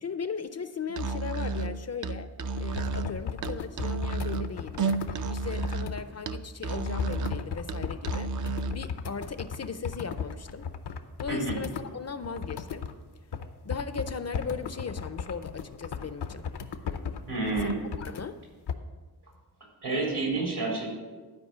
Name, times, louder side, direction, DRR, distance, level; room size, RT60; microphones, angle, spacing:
voice 1, 0.0-2.3 2.6-5.0 5.3-8.3 8.7-10.7 11.2-12.9 13.6-16.5 17.6-17.7 18.0-18.4, left 5 dB, 40° left, 0.4 m, -37 dB
Musical instrument, 0.9-8.9, right 3 dB, 50° right, 0.5 m, -32 dB
sound 1, 2.6-6.1 6.7-12.9 13.3-18.2 18.7-18.8, left 6 dB, 90° left, 0.7 m, -36 dB
voice 2, 17.3-17.7 19.8-20.9, right 3 dB, 75° right, 3.8 m, -29 dB
12.5 x 5.1 x 6.6 m
wide cardioid pair, 120°, 39 cm